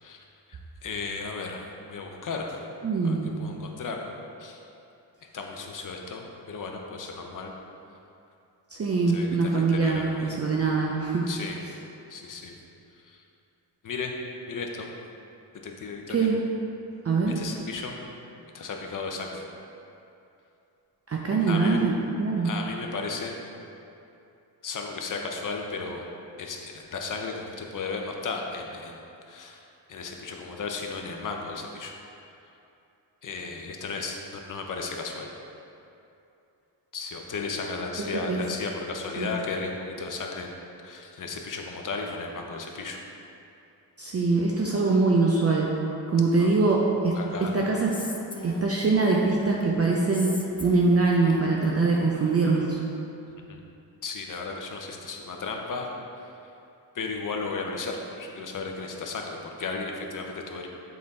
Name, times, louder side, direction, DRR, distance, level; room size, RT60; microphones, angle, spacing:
voice 1, 0.0-2.6 3.0-4.1 4.4-4.6 5.3-7.5 9.1-10.4 11.3-11.6 12.1-12.6 12.9-13.2 13.8-14.1 14.5-14.9 15.6-16.3 17.4-18.0 18.5-19.4 21.5-21.8 22.4-23.3 24.6-26.0 26.4-29.0 29.3-29.6 29.9-31.9 33.2-35.3 36.9-40.5 40.8-43.0 46.4-46.6 47.1-47.5 53.5-53.6 54.0-55.9 56.2-56.4 56.9-60.7, left 4 dB, 45° left, 2 dB, 0.8 m, -35 dB
voice 2, 2.8-3.4 8.7-11.3 16.1-16.4 17.0-17.4 21.1-22.5 38.0-38.4 39.2-39.3 44.0-45.7 46.1-47.1 47.4-47.9 48.4-50.3 50.6-52.8, right 3 dB, 35° right, -2 dB, 0.6 m, -23 dB
Female speech woman speaking, 47.9-49.6 50.1-52.6, left 2 dB, 10° left, 0.4 m, -40 dB
7.5 x 4.0 x 4.1 m, 2.8 s
cardioid pair, 100°, 45 cm